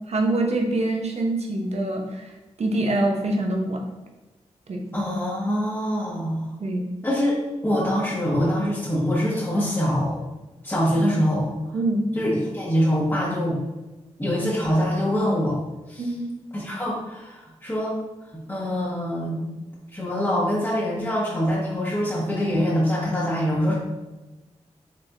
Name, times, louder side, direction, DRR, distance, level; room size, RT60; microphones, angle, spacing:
voice 1, 0.1-2.3 2.6-3.8 4.7-4.8 6.6-6.8 10.9-11.2 11.7-12.0 16.0-16.3, right 2 dB, 65° right, 2 dB, 0.8 m, -25 dB
voice 2, 4.9-6.5 7.0-7.4 7.6-10.2 10.6-11.5 12.1-13.6 14.2-15.6 15.9-16.0 16.5-18.0 18.5-19.5 19.9-23.7, equal, 20° left, -6 dB, 1.2 m, -24 dB
4.6 x 3.3 x 2.6 m, 1.1 s
cardioid pair, 40°, 12 cm